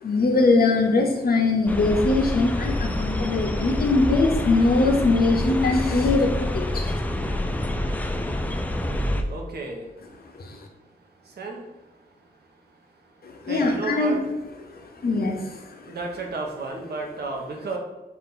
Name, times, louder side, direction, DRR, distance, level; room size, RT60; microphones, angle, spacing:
voice 1, 0.0-6.9 10.4-10.6 13.2-14.2 15.0-16.0, left 3 dB, 60° left, 3 dB, 0.7 m, -22 dB
sound 1, 1.7-9.2, left 1 dB, 10° left, 0.3 m, -27 dB
voice 2, 9.3-9.9 11.2-11.7 13.5-14.2 14.7-14.8 15.9-17.8, right 3 dB, 70° right, 1 dB, 0.8 m, -32 dB
4.2 x 2.5 x 3.8 m, 1.1 s
wide cardioid pair, 95°, 17 cm